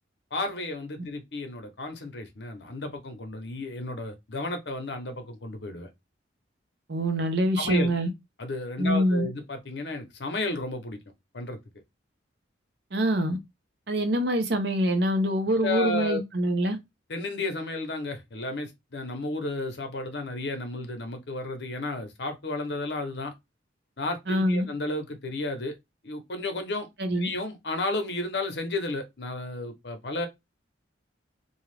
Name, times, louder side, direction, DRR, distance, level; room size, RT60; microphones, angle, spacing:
voice 1, 0.3-5.9 7.6-7.9 8.4-11.0 11.3-11.6 15.6-16.2 17.1-23.3 24.0-25.8 26.0-26.9 27.2-30.3, left 2 dB, 65° left, 0.7 m, -32 dB
voice 2, 6.9-8.1 8.8-9.3 12.9-13.4 13.9-16.8 24.3-24.7 27.0-27.3, equal, 60° right, 0.7 m, -25 dB
2.6 x 2.3 x 3.3 m
head